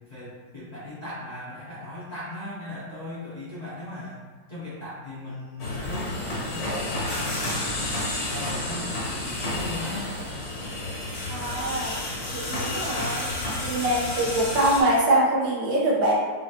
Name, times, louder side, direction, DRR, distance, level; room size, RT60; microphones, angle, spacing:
voice 1, 0.1-4.2 4.5-10.1, left 1 dB, 35° left, -10 dB, 0.7 m, -38 dB
sound 1, 5.6-14.8, left 1 dB, 55° left, 1.5 m, -30 dB
voice 2, 11.3-12.0 12.3-13.3 13.6-16.1, right 1 dB, 80° right, -4 dB, 1.7 m, -24 dB
5.5 x 2.6 x 2.9 m, 1.5 s
omnidirectional pair, 2.0 m